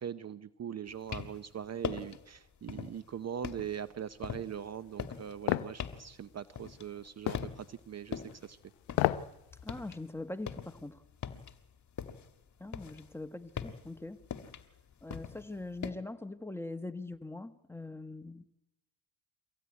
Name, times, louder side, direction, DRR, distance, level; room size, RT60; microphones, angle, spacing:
voice 1, 0.0-8.6, right 9 dB, 35° right, 15 dB, 0.7 m, -41 dB
sound 1, 0.9-1.5 1.8-2.3 2.7-3.1 3.4-7.1 7.3-7.8 8.1-10.0 10.3-12.3 12.7-15.9, left 7 dB, 40° left, 1.6 m, -42 dB
sound 2, 5.5-5.7 7.3-7.5 8.9-9.3 9.7-9.8, left 17 dB, 85° left, 0.9 m, -29 dB
voice 2, 9.6-11.0 12.6-14.2 15.0-18.4, left 2 dB, 5° left, 10 dB, 1.2 m, -42 dB
23.5 x 16.0 x 9.6 m, 0.96 s
cardioid pair, 85°, 45 cm